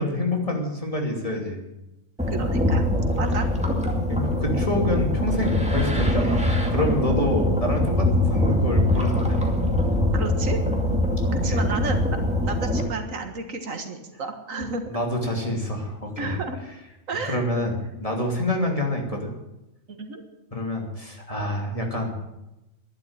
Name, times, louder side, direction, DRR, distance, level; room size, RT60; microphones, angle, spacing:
voice 1, 0.0-1.6 4.1-9.4 11.2-11.6 14.9-16.4 17.2-19.3 20.5-22.2, left 1 dB, 25° left, 1 dB, 2.9 m, -27 dB
sound 1, 2.2-12.8, left 1 dB, 5° right, 2.3 m, -23 dB
voice 2, 2.3-2.8 3.1-3.8 10.0-10.6 11.3-14.8 16.2-16.6 17.1-17.4 19.9-20.2, right 3 dB, 85° right, 6 dB, 2.1 m, -32 dB
11.5 x 11.0 x 8.9 m, 0.95 s
omnidirectional pair, 1.3 m